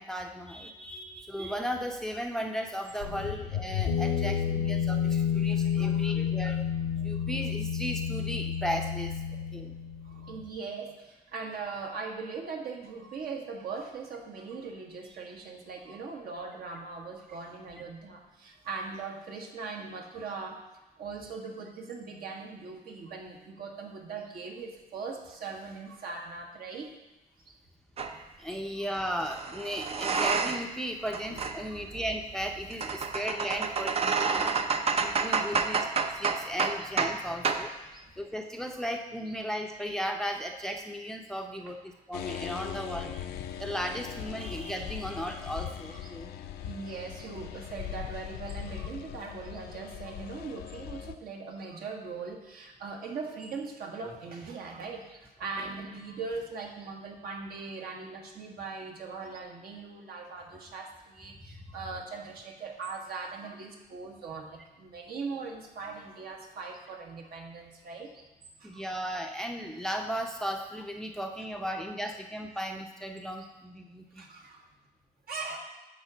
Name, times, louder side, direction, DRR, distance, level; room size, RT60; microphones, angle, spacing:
voice 1, 0.0-6.6 7.0-9.2 9.5-9.8 26.2-26.3 28.4-34.5 35.0-37.7 38.2-43.2 43.6-46.3 54.1-54.2 61.6-61.7 68.6-74.2, equal, 5° left, 3 dB, 0.6 m, -36 dB
sound 1, 3.0-10.4, left 8 dB, 90° left, 1.1 m, -30 dB
voice 2, 10.0-20.6 21.0-26.9 27.5-27.6 28.5-28.8 31.6-31.8 33.0-33.2 34.3-34.8 37.9-38.0 43.0-43.1 45.9-68.2 68.6-68.8 74.1-74.6 75.3-75.6, right 4 dB, 65° right, 0 dB, 1.7 m, -40 dB
sound 2, 28.0-28.2 29.2-30.8 31.1-37.2 37.4-37.7, right 5 dB, 35° right, 0.6 m, -29 dB
sound 3, 42.1-51.2, left 10 dB, 70° left, 0.6 m, -40 dB
10.0 x 3.7 x 7.0 m, 1.0 s
cardioid pair, 110°, 17 cm